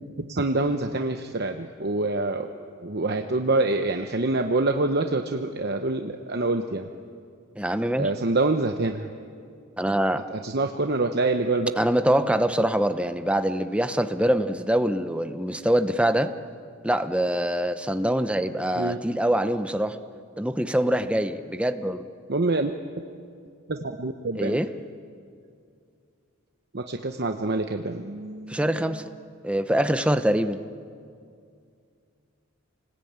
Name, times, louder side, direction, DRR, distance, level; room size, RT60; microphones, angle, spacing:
voice 1, 0.3-2.5 2.8-6.9 8.0-9.1 10.3-11.7 18.8-19.0 22.3-22.7 23.7-24.6 26.7-28.8, right 2 dB, 50° right, 5 dB, 0.9 m, -26 dB
voice 2, 7.6-8.1 9.8-10.2 11.8-16.3 16.8-20.0 20.4-22.0 24.3-24.7 28.5-29.1 29.4-30.6, right 1 dB, 5° right, 9 dB, 0.8 m, -24 dB
29.0 x 20.0 x 8.9 m, 2.3 s
head